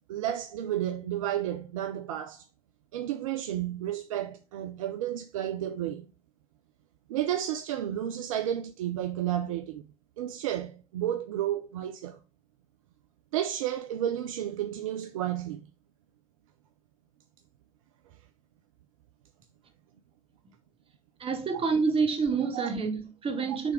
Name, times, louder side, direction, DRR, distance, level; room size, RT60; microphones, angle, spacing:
voice 1, 0.1-2.4 2.9-6.1 7.1-9.9 10.2-12.2 13.3-15.6 22.5-22.7, right 11 dB, 70° right, 0.5 m, -32 dB
voice 2, 21.2-23.7, right 5 dB, 30° right, 1.4 m, -28 dB
6.1 x 3.4 x 4.8 m
figure-of-eight pair, 60°, 18 cm